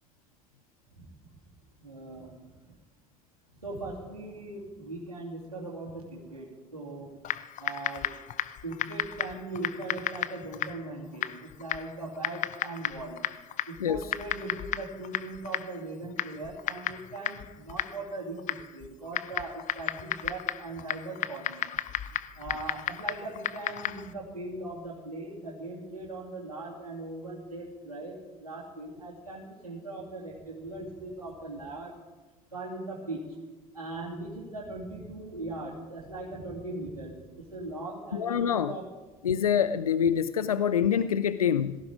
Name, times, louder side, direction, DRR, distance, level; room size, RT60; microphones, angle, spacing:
voice 1, 1.8-2.3 3.6-7.1 7.6-8.1 8.6-13.2 13.7-21.6 22.4-28.1 28.4-31.9 32.5-33.3 33.7-38.8, right 2 dB, 90° right, -8 dB, 2.8 m, -39 dB
Typing, 7.2-24.1, left 11 dB, 45° left, 0.8 m, -35 dB
voice 2, 38.1-38.7 39.2-41.8, left 8 dB, 85° left, 14 dB, 0.5 m, -25 dB
17.0 x 15.0 x 5.1 m, 1.2 s
figure-of-eight pair, 60°, 18 cm